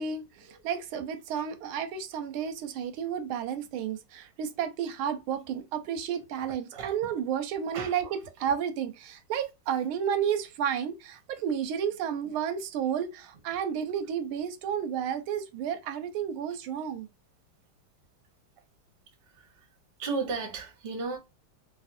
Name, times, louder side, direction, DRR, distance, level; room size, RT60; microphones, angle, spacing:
voice 1, 0.0-17.1, right 8 dB, 85° right, 1.5 m, -32 dB
voice 2, 20.0-21.2, right 4 dB, 45° right, 0.7 m, -33 dB
3.4 x 2.6 x 2.5 m
omnidirectional pair, 2.3 m